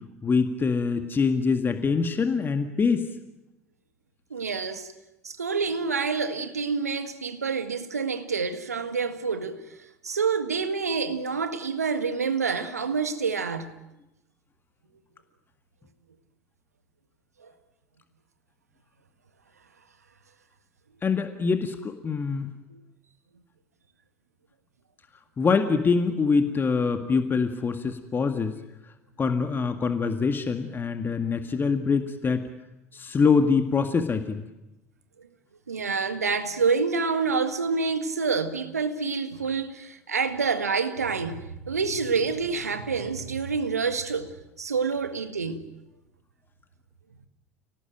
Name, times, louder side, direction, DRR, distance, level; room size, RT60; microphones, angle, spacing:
voice 1, 0.2-3.1 21.0-22.5 25.4-28.6 29.2-32.4 32.9-34.4, left 5 dB, 25° left, 1.9 m, -24 dB
voice 2, 4.3-4.9 5.2-9.6 10.0-13.8 17.4-17.5 35.7-45.7, right 5 dB, 85° right, 1.7 m, -27 dB
29.5 x 19.0 x 9.1 m
figure-of-eight pair, 70°, 8 cm